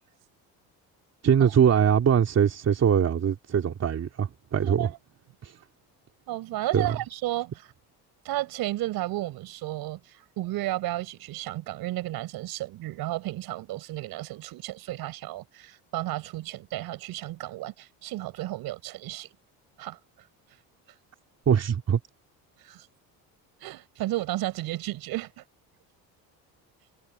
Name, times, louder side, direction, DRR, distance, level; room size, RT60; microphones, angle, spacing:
voice 1, 1.2-4.9 5.4-5.5 6.7-7.0 21.5-22.0, right 8 dB, 45° right, 3.5 m, -22 dB
voice 2, 4.6-5.0 6.3-7.7 8.2-19.3 19.8-20.0 22.6-22.9 23.6-25.4, right 16 dB, 70° right, 4.7 m, -33 dB
cardioid pair, 105°, 37 cm